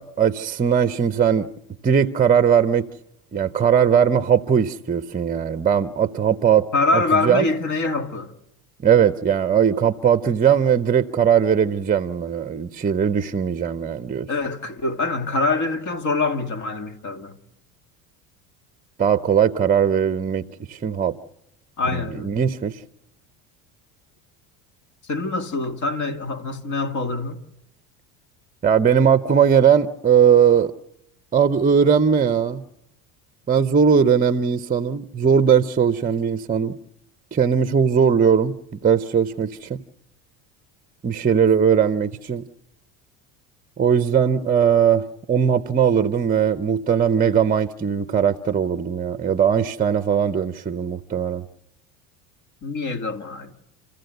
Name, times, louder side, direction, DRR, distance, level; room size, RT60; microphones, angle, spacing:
voice 1, 0.0-1.5 1.8-2.9 3.3-6.7 6.9-7.5 8.8-14.3 19.0-21.1 21.9-22.8 28.6-30.7 31.3-32.6 33.5-36.8 37.3-39.8 41.0-42.4 43.8-51.5, right 7 dB, 20° right, 0.8 m, -19 dB
voice 2, 6.7-8.3 14.3-17.4 21.8-22.3 25.0-27.4 52.6-53.5, left 3 dB, 40° left, 2.5 m, -24 dB
28.5 x 15.0 x 8.0 m
supercardioid pair, 100°, 43 cm